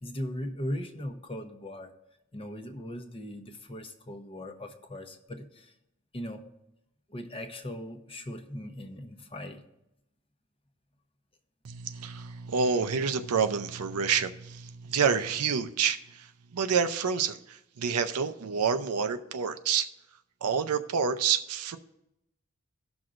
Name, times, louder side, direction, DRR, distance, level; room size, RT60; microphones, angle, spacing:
voice 1, 0.0-1.9 2.3-5.7 6.1-6.4 7.1-9.6, equal, 25° left, 0.8 m, -39 dB
voice 2, 11.6-19.9 20.4-21.8, right 6 dB, 85° right, 0.6 m, -28 dB
17.5 x 6.1 x 2.5 m
head